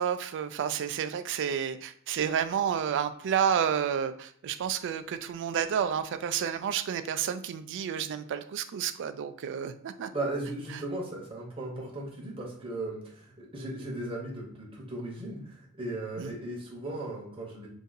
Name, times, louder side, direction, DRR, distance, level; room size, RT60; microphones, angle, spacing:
voice 1, 0.0-10.1 10.7-10.8 16.2-16.4, right 8 dB, 60° right, 11 dB, 0.3 m, -30 dB
voice 2, 10.1-17.7, right 2 dB, 25° right, -3 dB, 0.8 m, -37 dB
2.6 x 2.6 x 3.9 m, 0.63 s
head